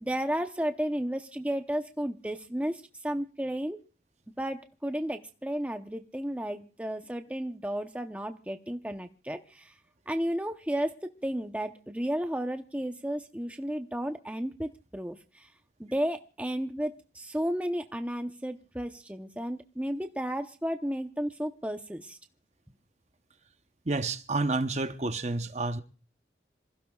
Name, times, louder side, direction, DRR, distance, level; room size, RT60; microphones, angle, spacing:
voice 1, 0.0-3.8 4.4-9.7 10.1-15.5 15.8-22.2, equal, 10° right, 0.8 m, -33 dB
voice 2, 23.9-25.8, right 3 dB, 40° right, 0.9 m, -29 dB
27.0 x 16.0 x 2.4 m
head